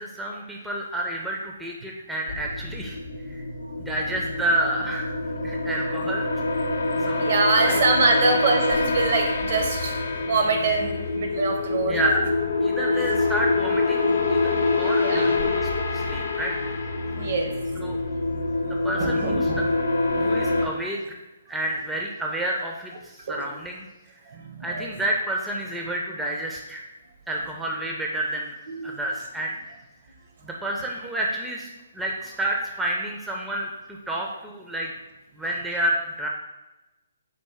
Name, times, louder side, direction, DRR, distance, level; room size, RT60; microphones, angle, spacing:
voice 1, 0.0-3.0 3.3-3.4 3.8-5.1 5.4-6.3 7.0-7.3 7.7-7.8 11.9-12.3 12.6-14.5 14.8-16.6 17.8-18.0 18.8-19.7 20.2-21.0 21.5-23.9 24.6-26.8 27.3-28.5 28.8-29.5 30.4-34.9 35.4-36.3, right 1 dB, 5° right, -1 dB, 0.4 m, -29 dB
sound 1, 2.3-20.7, left 3 dB, 70° left, 0.5 m, -25 dB
voice 2, 6.9-10.0 10.3-12.0 15.0-15.3 17.1-17.5 19.0-19.6 23.3-23.5 24.3-24.9 28.7-29.0, right 3 dB, 55° right, 3 dB, 0.7 m, -24 dB
4.2 x 2.5 x 3.6 m, 1.0 s
figure-of-eight pair, 135°, 0 cm